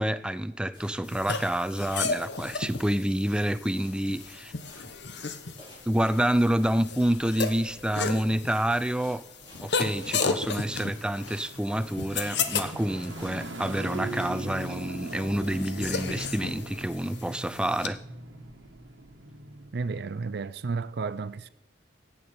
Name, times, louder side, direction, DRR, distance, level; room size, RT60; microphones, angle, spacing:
voice 1, 0.0-4.5 5.9-9.2 9.6-18.0, right 1 dB, 5° right, 0.4 m, -28 dB
sound 1, 0.7-17.0, left 1 dB, 30° left, 4.4 m, -56 dB
sound 2, 0.8-19.7, right 2 dB, 85° right, 1.2 m, -42 dB
sound 3, 1.1-17.9, left 5 dB, 65° left, 1.0 m, -34 dB
voice 2, 19.7-21.5, right 4 dB, 60° right, 0.5 m, -32 dB
15.5 x 8.4 x 4.3 m
head